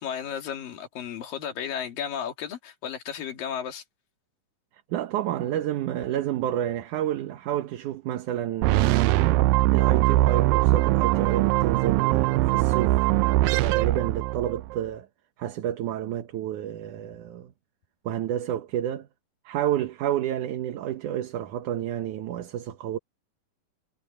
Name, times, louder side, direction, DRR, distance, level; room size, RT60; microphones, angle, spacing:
voice 1, 0.0-3.8, left 8 dB, 75° left, 4.0 m, -34 dB
voice 2, 4.9-9.3 9.7-15.1 15.4-17.5 18.1-19.1 19.5-23.0, right 11 dB, 65° right, 2.4 m, -30 dB
sound 1, 8.6-14.8, right 17 dB, 85° right, 2.3 m, -21 dB
omnidirectional pair, 4.0 m